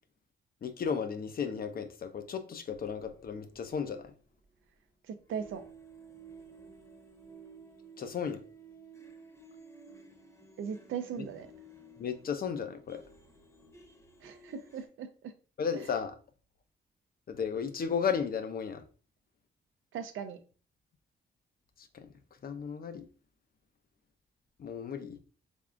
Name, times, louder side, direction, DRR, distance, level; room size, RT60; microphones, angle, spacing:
voice 1, 0.6-4.1 8.0-8.4 11.2-11.3 12.0-13.0 15.6-16.1 17.3-18.8 21.8-22.1 22.4-23.1 24.6-25.2, left 6 dB, 50° left, 0.6 m, -34 dB
Sweet Unaccompanied Cello, 2.7-4.7 5.2-14.9, right 3 dB, 15° left, 0.9 m, -54 dB
voice 2, 5.1-5.6 10.6-11.5 14.2-15.3 19.9-20.4, right 7 dB, 85° right, 0.5 m, -38 dB
3.6 x 3.5 x 2.4 m
cardioid pair, 90°, 20 cm